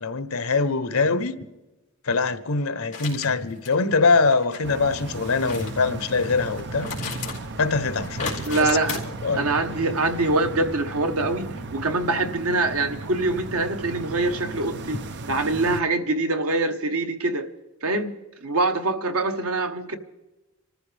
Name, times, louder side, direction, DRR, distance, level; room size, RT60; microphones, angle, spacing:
voice 1, 0.0-1.4 2.1-6.9 7.6-8.7 9.2-9.5, left 4 dB, 80° left, 0.9 m, -23 dB
sound 1, 2.9-3.3 3.6-3.7 4.3-4.6 5.3-5.7 6.1-7.5 7.8-9.0, left 5 dB, 35° left, 3.2 m, -34 dB
sound 2, 4.6-15.8, right 3 dB, 55° right, 0.7 m, -36 dB
voice 2, 8.4-9.0 9.3-15.0 15.3-17.5 17.8-20.0, right 2 dB, 90° right, 1.2 m, -24 dB
27.0 x 14.0 x 3.4 m
head